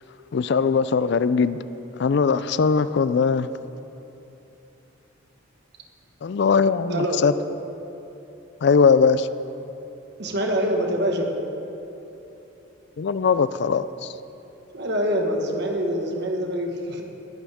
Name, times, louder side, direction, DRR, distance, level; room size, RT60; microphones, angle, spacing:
voice 1, 0.3-1.6 2.0-3.5 6.2-7.3 8.6-9.3 13.0-14.1, left 5 dB, 55° left, 14 dB, 0.4 m, -20 dB
voice 2, 6.9-7.2 10.2-11.4 14.7-17.0, equal, 55° right, 2 dB, 1.6 m, -25 dB
20.0 x 11.5 x 3.6 m, 3.0 s
head